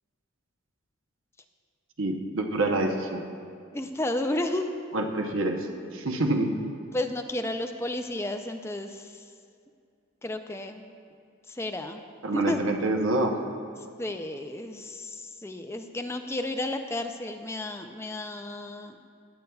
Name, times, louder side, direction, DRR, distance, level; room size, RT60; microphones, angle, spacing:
voice 1, 2.0-3.2 4.9-5.7 5.9-6.6 12.2-13.3, right 2 dB, 75° right, 3 dB, 0.9 m, -26 dB
voice 2, 3.7-4.7 6.9-9.3 10.2-11.0 11.5-12.1 12.3-12.6 13.8-19.0, left 1 dB, 10° left, 6 dB, 0.4 m, -32 dB
17.0 x 8.9 x 2.3 m, 2.4 s
head